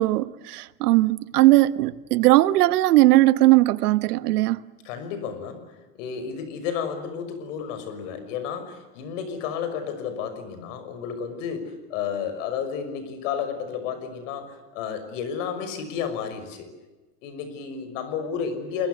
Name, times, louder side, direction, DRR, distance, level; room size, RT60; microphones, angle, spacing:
voice 1, 0.0-4.6, right 17 dB, 80° right, 1.3 m, -19 dB
voice 2, 4.8-16.7 17.2-18.9, left 7 dB, 55° left, 6.1 m, -32 dB
28.0 x 22.5 x 8.1 m
supercardioid pair, 170°, 45 cm